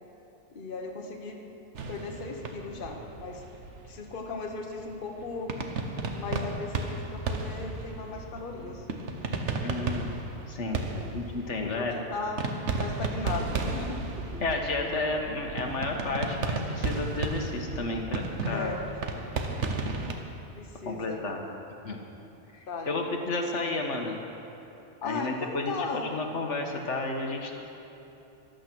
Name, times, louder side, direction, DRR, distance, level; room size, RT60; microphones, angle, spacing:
voice 1, 0.5-1.4 1.9-3.4 3.8-5.5 6.1-8.9 10.9-11.1 11.6-12.4 12.8-14.4 18.5-19.0 20.6-21.2 22.7-23.0 25.0-26.2, left 3 dB, 50° left, 1 dB, 1.3 m, -37 dB
sound 1, 1.7-20.1, right 3 dB, 80° right, 1.4 m, -34 dB
voice 2, 9.6-10.1 10.5-10.9 11.1-11.9 14.4-18.7 20.9-21.4 21.8-22.0 22.9-24.2 25.0-27.7, left 2 dB, 85° left, 2 dB, 1.6 m, -32 dB
14.0 x 12.0 x 6.1 m, 3.0 s
omnidirectional pair, 1.2 m